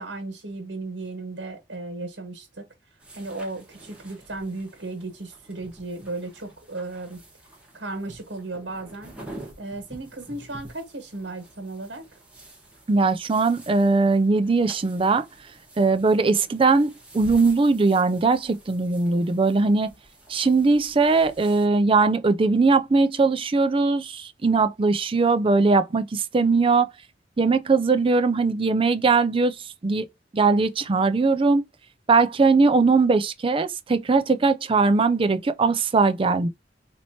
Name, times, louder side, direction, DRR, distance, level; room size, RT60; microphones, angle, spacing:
voice 1, 0.0-2.6 3.1-7.2 7.7-9.1 9.6-12.0, right 2 dB, 75° right, 1.5 m, -35 dB
sound 1, 3.0-21.7, right 1 dB, 5° right, 1.5 m, -48 dB
voice 2, 12.9-15.2 15.8-19.9 20.3-26.9 27.4-30.1 30.3-31.6 32.1-36.5, right 3 dB, 30° right, 0.4 m, -20 dB
4.3 x 2.9 x 2.8 m
head